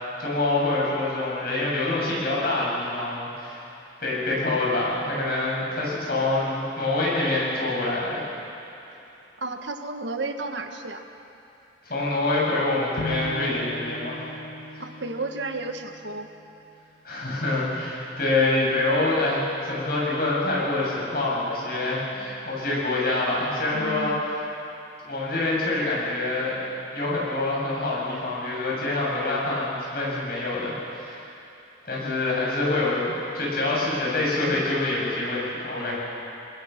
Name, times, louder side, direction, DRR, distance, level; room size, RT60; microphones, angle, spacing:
voice 1, 0.2-3.6 4.0-8.2 11.8-14.2 17.0-24.2 25.1-26.6 26.9-31.2 31.9-36.0, left 2 dB, 55° left, -5 dB, 7.8 m, -26 dB
voice 2, 9.4-11.0 14.8-16.3 23.7-24.2, right 2 dB, 80° right, 5 dB, 1.5 m, -32 dB
Bowed string instrument, 13.0-16.2, left 1 dB, 85° left, 2.2 m, -36 dB
28.0 x 20.5 x 5.9 m, 2.8 s
head